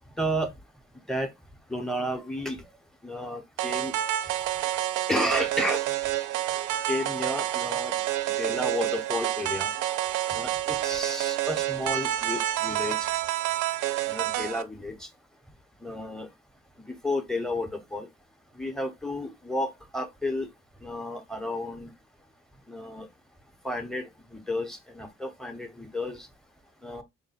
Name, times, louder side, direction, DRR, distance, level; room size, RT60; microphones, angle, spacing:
voice 1, 0.2-0.5 1.1-1.3 1.7-2.6 3.0-3.9 5.1-5.8 6.9-7.9 8.4-9.7 10.3-13.0 14.1-15.1 15.8-16.3 17.0-18.1 18.5-20.5 20.8-21.9 22.7-23.1 23.6-26.3 26.8-27.0, left 1 dB, ahead, 0.8 m, -32 dB
sound 1, 3.6-14.6, right 13 dB, 85° right, 0.5 m, -28 dB
3.6 x 2.1 x 4.1 m
cardioid pair, 90°, 30 cm